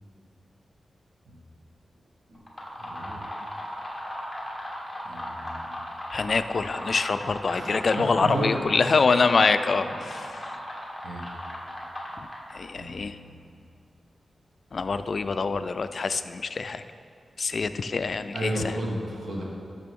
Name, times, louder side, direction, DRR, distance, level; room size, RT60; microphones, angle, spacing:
sound 1, 2.4-12.7, equal, 5° left, 1.5 m, -37 dB
voice 1, 2.7-3.4 5.0-5.8 7.5-8.6 10.4-10.8 11.0-11.3 12.7-13.4 18.3-19.4, right 1 dB, 80° right, -2 dB, 1.6 m, -33 dB
voice 2, 6.1-10.5 12.5-13.2 14.7-16.8 17.4-18.8, left 4 dB, 55° left, 11 dB, 0.3 m, -25 dB
12.5 x 5.9 x 3.7 m, 2.4 s
wide cardioid pair, 100°, 0 cm